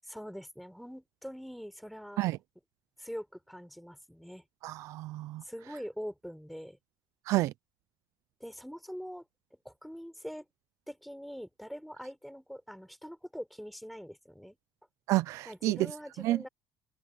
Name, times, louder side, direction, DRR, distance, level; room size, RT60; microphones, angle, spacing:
voice 1, 0.0-2.3 3.0-4.4 5.4-6.8 8.4-9.2 9.6-10.4 10.9-14.6 15.5-16.5, equal, ahead, 4.4 m, -43 dB
voice 2, 4.6-5.4 7.3-7.5 15.1-15.8 16.2-16.5, right 17 dB, 65° right, 0.5 m, -29 dB
open air
cardioid pair, 140°, 6 cm